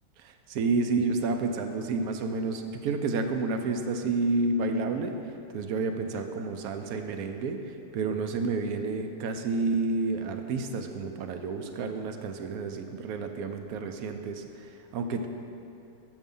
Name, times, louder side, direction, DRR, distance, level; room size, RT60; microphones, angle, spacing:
voice 1, 0.2-5.2 5.5-14.7 14.9-15.3, right 3 dB, 85° right, 6 dB, 1.1 m, -30 dB
7.1 x 5.4 x 5.4 m, 2.8 s
omnidirectional pair, 1.5 m